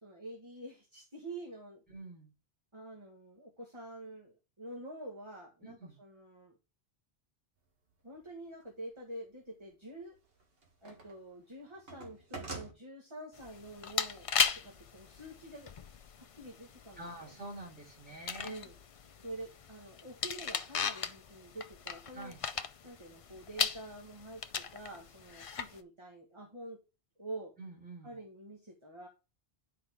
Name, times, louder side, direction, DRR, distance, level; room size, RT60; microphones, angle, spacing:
voice 1, 0.0-1.8 2.7-6.6 8.0-10.1 10.8-14.3 14.5-15.7 16.2-17.3 18.4-18.8 19.2-22.3 22.8-26.8 27.2-27.5 28.0-29.1, right 1 dB, 25° right, 0 dB, 1.7 m, -47 dB
voice 2, 1.9-2.3 5.6-6.0 17.0-18.7 22.1-22.4 27.6-28.2, right 2 dB, 10° right, -2 dB, 4.3 m, -47 dB
sound 1, 8.1-8.2 9.9-11.2 11.5-12.7, right 3 dB, 65° right, 1.7 m, -45 dB
sound 2, 13.4-25.8, left 6 dB, 45° left, 0.5 m, -38 dB
9.8 x 5.1 x 3.6 m, 0.30 s
omnidirectional pair, 1.1 m